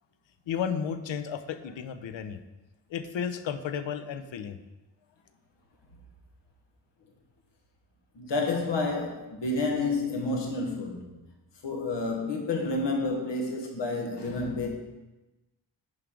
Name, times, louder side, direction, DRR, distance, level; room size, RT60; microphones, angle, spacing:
voice 1, 0.5-2.4 2.9-4.6 14.4-14.5, left 7 dB, 85° left, 0.7 m, -33 dB
voice 2, 8.1-11.1 11.6-14.7, left 3 dB, 70° left, 1.5 m, -29 dB
11.0 x 4.8 x 3.8 m
wide cardioid pair, 165°, 44 cm